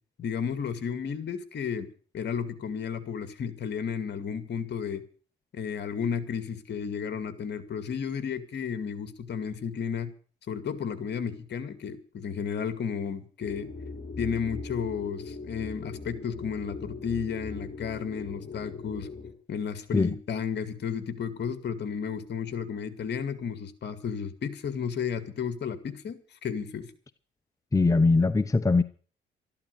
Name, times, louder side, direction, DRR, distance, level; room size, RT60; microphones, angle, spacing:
voice 1, 0.2-1.9 2.1-5.0 5.5-10.1 10.5-13.7 14.2-19.1 19.5-26.9, left 7 dB, 60° left, 2.2 m, -33 dB
sound 1, 13.4-19.3, left 3 dB, 45° left, 4.9 m, -40 dB
voice 2, 27.7-28.8, left 3 dB, 15° left, 0.8 m, -21 dB
13.5 x 12.0 x 6.9 m
cardioid pair, 90°, 20 cm